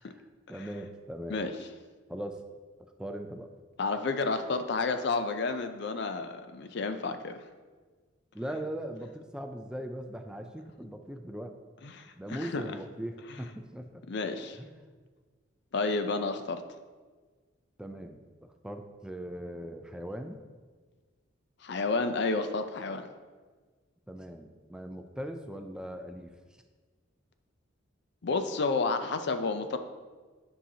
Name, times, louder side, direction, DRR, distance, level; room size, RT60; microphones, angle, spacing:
voice 1, 0.0-1.4 2.1-2.4 2.8-3.5 8.3-11.6 12.0-14.0 14.6-14.7 17.8-20.4 24.1-26.6, right 1 dB, 5° right, 5 dB, 0.3 m, -40 dB
voice 2, 3.8-7.4 11.8-12.6 14.1-14.6 15.7-16.6 21.6-23.0 28.2-29.8, left 3 dB, 60° left, 8 dB, 0.5 m, -30 dB
10.0 x 5.6 x 2.8 m, 1.4 s
head